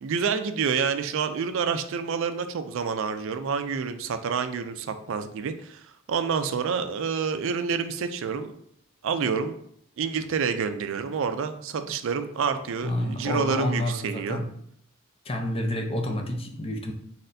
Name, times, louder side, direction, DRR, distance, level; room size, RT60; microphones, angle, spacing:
voice 1, 0.0-8.5 9.0-9.6 10.0-14.4, right 6 dB, 60° right, 9 dB, 0.4 m, -28 dB
voice 2, 12.8-14.5 15.3-16.9, left 1 dB, 25° left, 3 dB, 0.5 m, -29 dB
4.2 x 4.1 x 2.6 m, 0.68 s
head